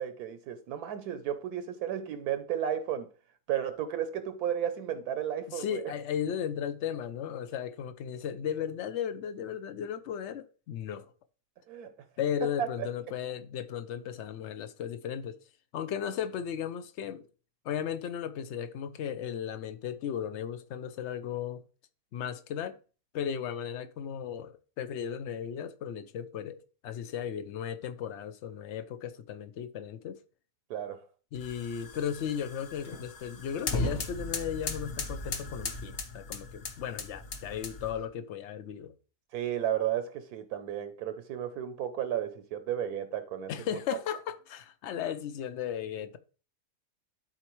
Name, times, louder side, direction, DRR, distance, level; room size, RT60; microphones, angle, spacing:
voice 1, 0.0-3.1 3.5-5.9 11.7-11.9 12.6-12.9 30.7-31.0 39.3-43.5, right 10 dB, 75° right, 1.1 m, -33 dB
voice 2, 5.5-11.1 12.2-15.4 15.7-17.3 17.6-21.6 22.1-22.8 23.1-30.2 31.3-38.9 43.5-46.2, left 9 dB, 70° left, 0.7 m, -35 dB
sound 1, 31.3-38.0, left 3 dB, 45° left, 0.9 m, -37 dB
11.5 x 4.4 x 3.0 m
omnidirectional pair, 1.7 m